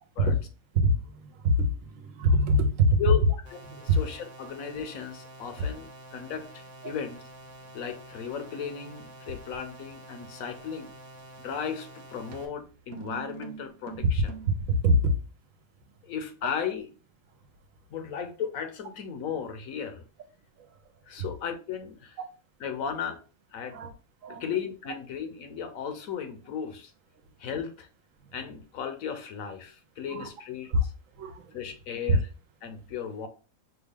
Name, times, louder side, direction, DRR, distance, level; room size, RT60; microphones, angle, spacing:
voice 1, 0.7-3.0 3.7-4.0 5.6-5.7 6.8-6.9 14.7-15.2 23.7-23.9 24.2-24.5 30.1-30.3 30.7-30.8 31.1-31.5 32.1-32.2, equal, 70° right, 1.1 m, -24 dB
sound 1, 3.4-12.4, right 1 dB, 40° right, 1.1 m, -48 dB
voice 2, 3.5-7.2 7.7-10.9 11.4-14.3 16.0-16.9 17.9-20.0 21.1-22.2 22.6-23.2 23.5-23.8 24.3-26.9 27.4-27.9 28.3-30.9 31.5-32.3 32.6-33.3, left 7 dB, 70° left, 1.1 m, -35 dB
sound 2, 11.4-11.7 12.3-14.7, right 7 dB, 90° right, 1.1 m, -44 dB
5.6 x 2.3 x 3.5 m
omnidirectional pair, 1.5 m